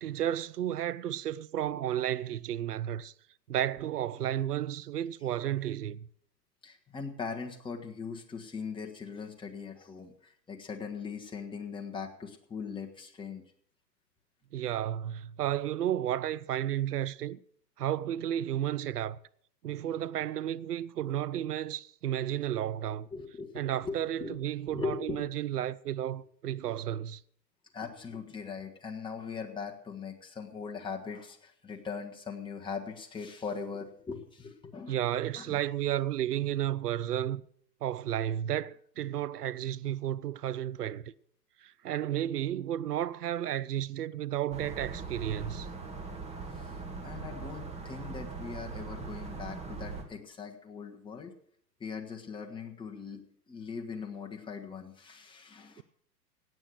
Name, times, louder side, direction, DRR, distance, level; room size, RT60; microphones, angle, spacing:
voice 1, 0.0-3.1 3.5-6.1 14.5-17.4 17.8-19.2 19.6-23.1 23.5-27.2 34.9-37.4 37.8-41.1 41.6-45.7, right 11 dB, 65° right, 0.7 m, -32 dB
voice 2, 6.6-13.4 23.1-24.4 24.7-25.3 27.7-35.0 35.3-35.6 46.6-46.7 47.0-51.3 51.8-55.8, left 5 dB, 10° left, 1.5 m, -40 dB
sound 1, 44.5-50.0, right 4 dB, 10° right, 1.9 m, -41 dB
17.0 x 8.8 x 6.3 m
figure-of-eight pair, 110°, 50 cm